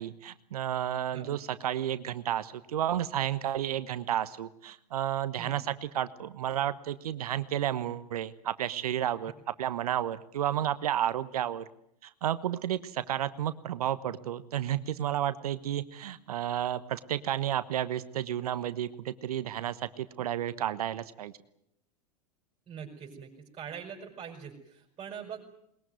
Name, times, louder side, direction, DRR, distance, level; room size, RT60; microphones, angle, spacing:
voice 1, 0.0-9.3 9.6-11.6 12.0-21.3, right 11 dB, 70° right, 13 dB, 1.2 m, -32 dB
voice 2, 22.7-25.4, right 7 dB, 25° right, -2 dB, 5.9 m, -43 dB
21.5 x 21.0 x 9.5 m, 0.76 s
figure-of-eight pair, 95°, 20 cm